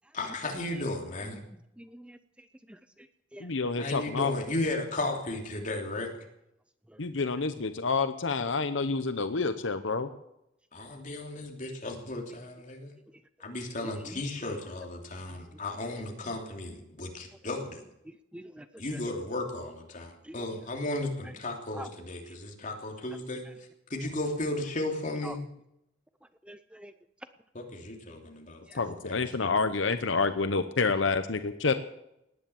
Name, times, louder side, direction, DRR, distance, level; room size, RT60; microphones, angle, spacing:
voice 1, 0.1-1.4 3.8-6.1 10.7-12.9 13.4-17.8 18.8-23.5 23.9-25.4 27.5-29.5, left 2 dB, 40° left, 2 dB, 3.1 m, -35 dB
voice 2, 1.8-2.2 2.7-2.8 3.3-3.5 13.8-14.2 18.3-18.6 18.9-19.0 20.2-20.4 21.8-21.9 25.2-25.3 26.5-26.9 28.7-28.8, right 1 dB, 5° right, 11 dB, 0.5 m, -44 dB
voice 3, 3.4-4.3 7.0-10.1 28.8-31.7, left 4 dB, 75° left, 10 dB, 0.9 m, -28 dB
18.5 x 10.0 x 7.1 m, 0.82 s
head